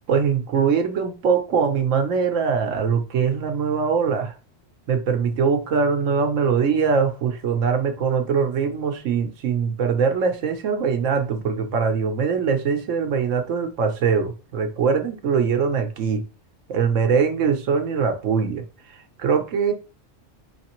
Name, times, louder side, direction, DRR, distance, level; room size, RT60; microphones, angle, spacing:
voice 1, 0.1-4.3 4.9-16.2 16.7-18.6 19.2-19.7, right 6 dB, 80° right, 5 dB, 1.2 m, -22 dB
4.9 x 3.2 x 3.0 m, 0.33 s
omnidirectional pair, 1.3 m